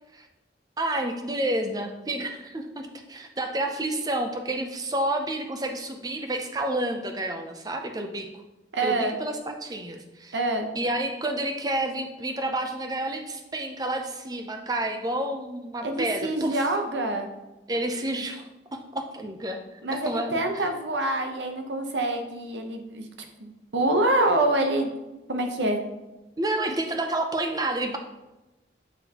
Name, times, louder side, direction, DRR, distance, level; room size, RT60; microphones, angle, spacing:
voice 1, 0.8-8.3 8.8-10.4 10.7-16.7 17.7-19.6 19.9-20.7 26.4-28.0, right 1 dB, 20° right, 5 dB, 0.5 m, -30 dB
voice 2, 8.7-9.2 10.3-10.7 15.8-17.3 19.8-23.1 23.4-24.9 25.3-25.8, right 1 dB, 90° right, 5 dB, 0.8 m, -26 dB
7.1 x 5.5 x 2.9 m, 1.0 s
head